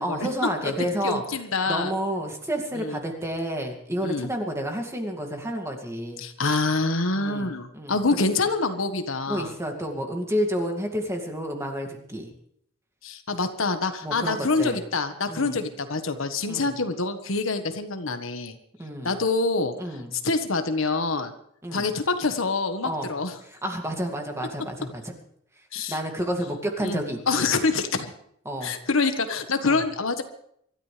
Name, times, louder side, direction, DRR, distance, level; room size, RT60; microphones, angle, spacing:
voice 1, 0.0-1.2 1.7-6.2 7.2-8.0 8.3-8.5 9.3-12.3 14.0-14.8 15.3-15.6 16.5-16.8 18.8-19.1 19.8-20.1 21.6-21.9 22.8-23.1 23.4-25.1 25.9-27.5 28.5-28.7 29.6-29.8, equal, 15° right, 2 dB, 2.3 m, -30 dB
voice 2, 1.0-1.9 2.8-3.0 4.0-4.3 6.2-9.5 13.0-18.5 19.0-19.7 20.1-21.3 21.7-23.4 25.7-26.0 26.8-27.0 27.3-28.1 28.6-30.2, left 3 dB, 75° left, 7 dB, 1.4 m, -26 dB
25.0 x 13.5 x 3.4 m, 0.69 s
head